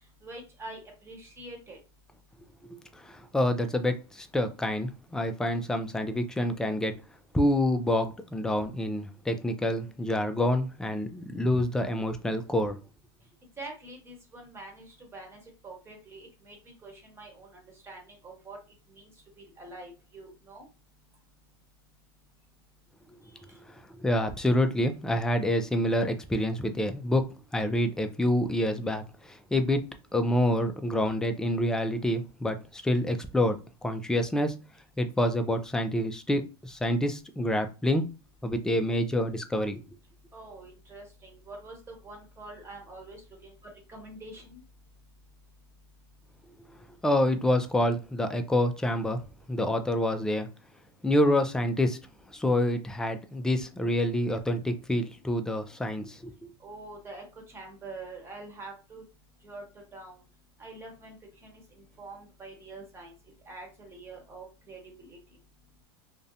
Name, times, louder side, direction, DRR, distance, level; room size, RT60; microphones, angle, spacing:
voice 1, 0.2-1.8 13.6-16.6 16.8-18.6 18.9-19.1 19.4-20.7 23.2-23.4 40.3-44.6 56.6-59.0 59.4-59.6 59.9-60.2 60.6-63.1 63.5-65.2, right 2 dB, 20° right, 1.0 m, -45 dB
voice 2, 3.0-7.0 7.3-12.8 24.0-29.0 29.3-34.6 35.0-38.1 38.4-39.8 47.0-49.2 49.5-50.5 51.0-52.0 52.3-56.3, left 1 dB, 5° left, 0.3 m, -27 dB
2.5 x 2.0 x 2.6 m
supercardioid pair, 120°, 13 cm